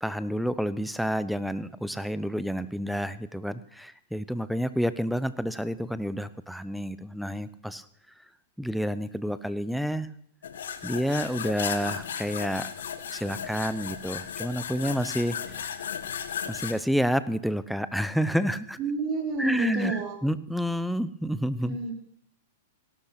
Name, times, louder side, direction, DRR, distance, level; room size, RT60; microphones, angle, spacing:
voice 1, 0.0-7.8 8.6-10.1 10.8-12.7 13.1-15.7 16.5-18.8 19.4-21.8, equal, ahead, 15 dB, 0.8 m, -29 dB
sound 1, 10.4-16.7, left 8 dB, 80° left, 1.5 m, -35 dB
voice 2, 18.8-20.2 21.6-21.9, right 4 dB, 35° right, 1 dB, 5.0 m, -30 dB
17.0 x 12.0 x 5.9 m, 0.66 s
hypercardioid pair, 130°, 0 cm